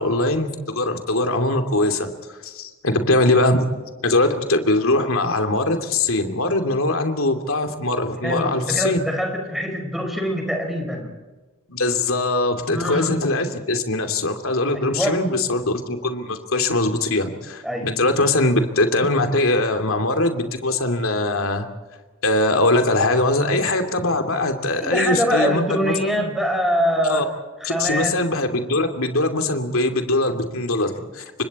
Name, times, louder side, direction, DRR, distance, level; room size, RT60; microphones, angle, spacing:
voice 1, 0.0-3.7 4.0-9.0 11.7-21.7 22.2-26.2 27.1-27.2 27.6-31.5, left 2 dB, 70° left, 5 dB, 2.8 m, -21 dB
voice 2, 8.2-11.1 12.7-13.2 14.7-15.2 17.6-17.9 24.8-27.3 27.6-28.2, equal, ahead, 2 dB, 5.0 m, -24 dB
30.0 x 25.0 x 4.3 m, 1.2 s
head